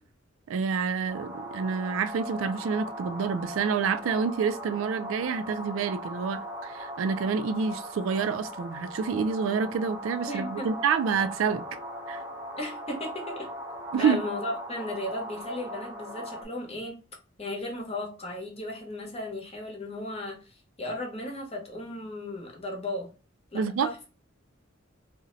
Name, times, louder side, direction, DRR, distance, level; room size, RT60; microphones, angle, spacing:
voice 1, 0.5-11.6 12.1-12.2 13.9-14.2 23.5-24.1, right 6 dB, 90° right, 0.3 m, -28 dB
sound 1, 1.1-16.4, equal, 20° right, 0.6 m, -39 dB
voice 2, 10.3-10.7 12.6-13.5 14.0-17.0 17.4-23.1 23.5-24.1, left 1 dB, 30° left, 0.9 m, -35 dB
2.6 x 2.1 x 3.8 m
head